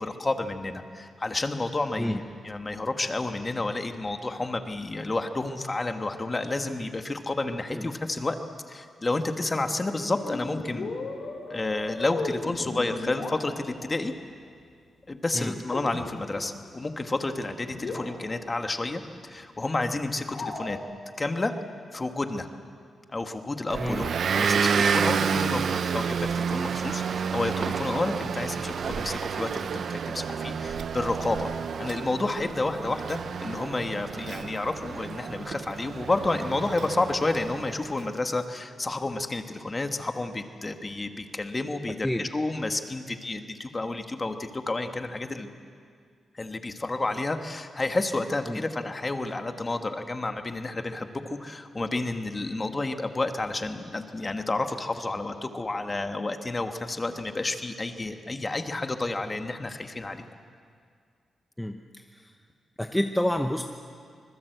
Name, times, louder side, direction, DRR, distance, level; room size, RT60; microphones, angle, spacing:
voice 1, 0.0-8.4 8.7-10.9 11.5-14.1 15.1-20.8 21.2-21.5 21.9-22.5 23.1-31.5 31.8-45.5 46.3-60.2, left 2 dB, 25° left, 7 dB, 1.5 m, -30 dB
sound 1, 10.2-13.9 15.7-16.6 16.9-17.0 17.4-17.5 17.7-18.6 20.3-20.8, left 3 dB, 55° left, 3.9 m, -36 dB
Motor vehicle (road) / Engine, 23.7-37.9, right 6 dB, 60° right, 0.7 m, -30 dB
voice 2, 23.8-24.1 42.0-42.3 48.5-48.6 61.6-61.8 62.1-62.3 62.8-63.6, left 1 dB, 5° left, 4 dB, 0.9 m, -28 dB
25.5 x 21.0 x 8.0 m, 2.2 s
wide cardioid pair, 130°, 0 cm